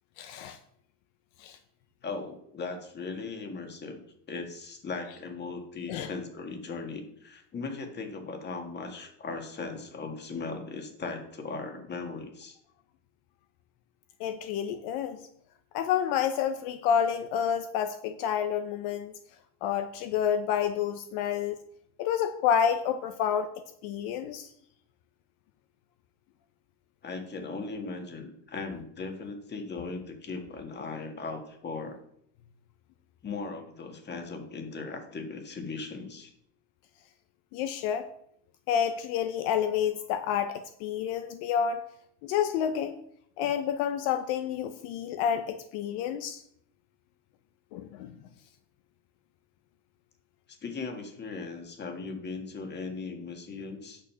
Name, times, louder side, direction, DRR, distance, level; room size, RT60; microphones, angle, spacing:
voice 1, 0.2-0.6 1.4-1.6 5.9-6.1 14.2-15.2 15.7-19.1 19.6-21.6 22.0-23.5 23.8-24.5 37.5-38.1 38.7-41.8 42.2-43.0 43.4-46.4 47.7-48.1, left 8 dB, 55° left, 9 dB, 0.9 m, -29 dB
voice 2, 2.0-4.0 4.3-12.6 27.0-32.0 33.2-36.3 50.6-54.0, left 4 dB, 20° left, 5 dB, 1.7 m, -38 dB
9.0 x 6.5 x 5.6 m, 0.70 s
supercardioid pair, 135°, 47 cm